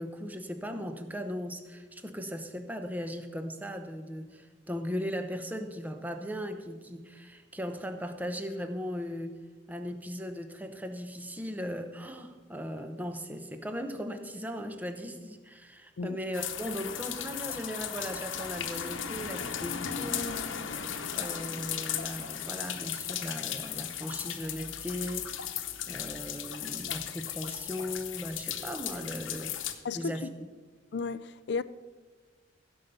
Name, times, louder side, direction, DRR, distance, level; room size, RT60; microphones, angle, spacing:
voice 1, 0.0-9.4 9.7-20.4 21.1-25.4 25.9-29.5 29.9-30.3, equal, 10° right, 0.8 m, -38 dB
sound 1, 16.3-29.7, left 9 dB, 85° left, 0.9 m, -36 dB
voice 2, 29.8-30.2 30.9-31.6, left 4 dB, 60° left, 0.4 m, -33 dB
16.0 x 5.5 x 6.8 m
head